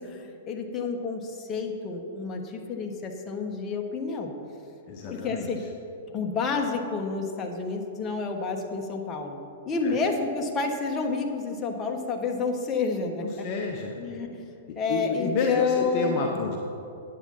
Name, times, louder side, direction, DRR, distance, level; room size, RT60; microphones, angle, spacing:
voice 1, 0.0-4.3 5.0-5.6 6.1-13.5 14.0-14.4 14.7-16.4, left 4 dB, 25° left, 2 dB, 1.3 m, -29 dB
voice 2, 4.9-5.5 9.8-10.0 13.4-14.0 14.6-16.6, left 4 dB, 40° left, 1 dB, 1.0 m, -30 dB
9.8 x 7.6 x 5.6 m, 2.6 s
hypercardioid pair, 110°, 0 cm